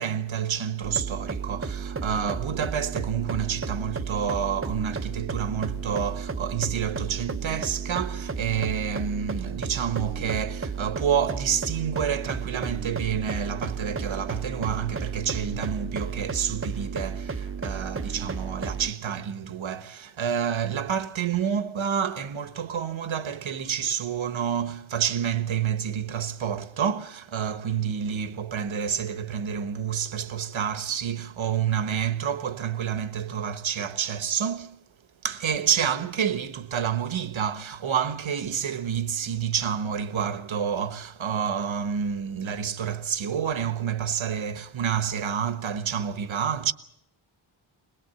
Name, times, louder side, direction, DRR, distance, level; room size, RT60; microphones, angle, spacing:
voice 1, 0.0-34.8 35.2-46.7, right 8 dB, 70° right, 1.3 m, -28 dB
sound 1, 0.8-18.9, right 5 dB, 25° right, 0.8 m, -33 dB
22.0 x 22.0 x 7.9 m
wide cardioid pair, 140°, 48 cm